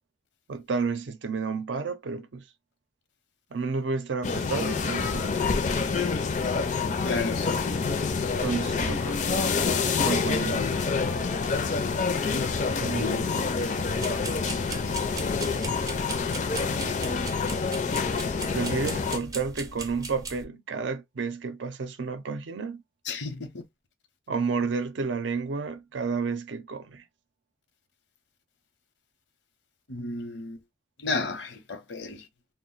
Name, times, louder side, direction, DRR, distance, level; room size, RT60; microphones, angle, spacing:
voice 1, 0.5-2.4 3.5-5.4 8.4-9.6 10.0-10.7 12.8-13.6 18.5-22.8 24.3-27.0, right 4 dB, 85° right, 0.5 m, -31 dB
sound 1, 4.2-19.2, left 4 dB, 40° left, 0.4 m, -27 dB
voice 2, 7.0-7.6 16.8-16.9 23.1-23.6 29.9-30.6 31.0-32.3, left 3 dB, 80° left, 0.8 m, -32 dB
sound 2, 13.8-20.4, right 3 dB, 20° right, 0.5 m, -39 dB
2.3 x 2.1 x 3.9 m
head